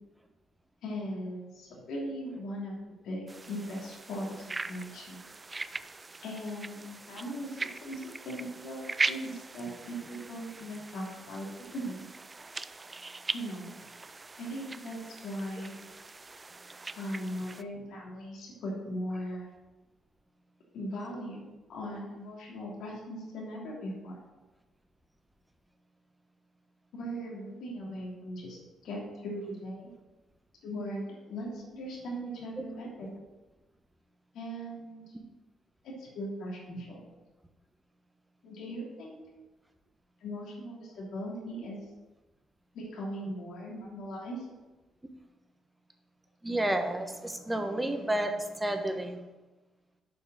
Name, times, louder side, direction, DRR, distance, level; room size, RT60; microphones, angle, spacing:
voice 1, 0.8-2.8 3.0-5.2 6.2-12.0 13.3-13.8 14.4-15.7 16.9-19.5 20.7-24.2 26.9-29.9 30.6-33.1 34.3-35.1 35.8-37.0 38.4-39.2 40.2-41.8 42.7-44.5, equal, 75° left, -3 dB, 3.0 m, -39 dB
sound 1, 3.3-17.6, right 3 dB, 25° right, 0.3 m, -40 dB
voice 2, 46.4-49.2, right 1 dB, 10° right, 5 dB, 1.2 m, -31 dB
7.8 x 5.3 x 6.2 m, 1.1 s
cardioid pair, 90°, 0 cm